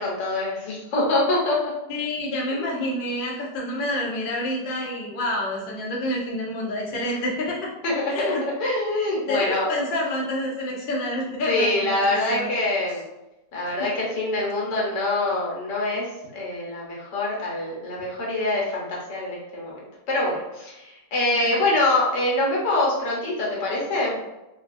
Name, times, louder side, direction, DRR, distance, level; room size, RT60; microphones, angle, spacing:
voice 1, 0.0-1.7 2.5-2.7 7.0-7.2 7.8-9.7 11.5-13.0 13.5-19.7 20.1-24.2, left 2 dB, 90° left, -4 dB, 1.6 m, -25 dB
voice 2, 1.9-7.6 8.1-8.4 9.2-12.0 12.3-12.5 21.4-21.6, left 1 dB, 50° left, -3 dB, 0.6 m, -28 dB
3.8 x 2.3 x 2.5 m, 0.97 s
omnidirectional pair, 1.8 m